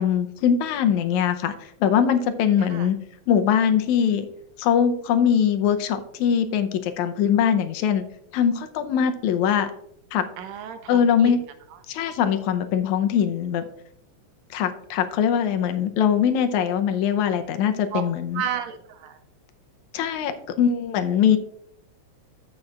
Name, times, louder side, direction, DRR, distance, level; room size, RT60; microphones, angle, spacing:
voice 1, 0.0-1.5 1.8-3.0 3.3-4.3 4.6-8.0 8.3-9.7 10.1-10.2 10.9-11.4 11.9-13.6 14.5-18.4 19.9-20.3 20.6-21.4, left 8 dB, 85° left, 8 dB, 2.1 m, -22 dB
voice 2, 10.4-11.3 17.9-18.0 18.3-19.2, right 9 dB, 75° right, 8 dB, 1.8 m, -32 dB
14.0 x 6.3 x 2.4 m, 0.72 s
omnidirectional pair, 3.3 m